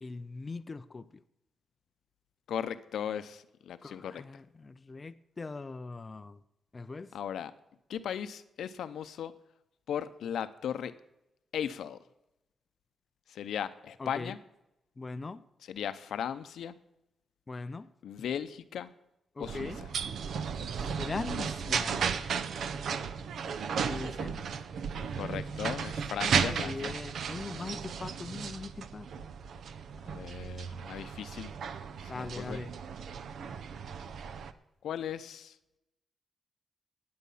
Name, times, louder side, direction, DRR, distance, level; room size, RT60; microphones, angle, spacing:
voice 1, 0.0-1.1 3.8-6.4 6.7-7.1 14.0-14.3 15.0-15.4 17.5-17.9 19.4-19.8 21.0-22.1 23.9-24.4 26.2-29.1 32.1-32.7, left 3 dB, 25° left, 10 dB, 0.4 m, -40 dB
voice 2, 2.5-4.2 7.1-7.5 7.9-9.3 9.9-10.9 11.5-12.0 13.3-14.4 15.6-16.7 18.0-18.9 19.4-19.9 25.1-27.0 30.1-31.5 32.0-32.6 34.8-35.6, left 9 dB, 85° left, 12 dB, 0.7 m, -37 dB
sound 1, 19.4-34.5, right 6 dB, 65° right, 0.7 m, -35 dB
12.5 x 9.6 x 5.5 m, 0.89 s
wide cardioid pair, 160°, 0 cm